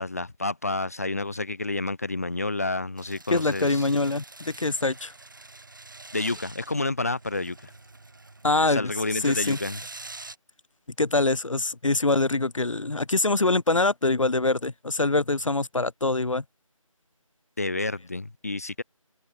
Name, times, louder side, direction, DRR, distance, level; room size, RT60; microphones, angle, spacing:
voice 1, 0.0-3.9 6.1-7.7 8.7-9.8 17.6-18.8, left 2 dB, 25° left, 1.4 m, -29 dB
sound 1, 3.0-10.4, right 3 dB, 35° right, 5.4 m, -45 dB
voice 2, 3.3-5.1 8.4-8.9 9.2-9.6 11.0-16.4, left 2 dB, 65° left, 0.7 m, -24 dB
figure-of-eight pair, 165°, 18 cm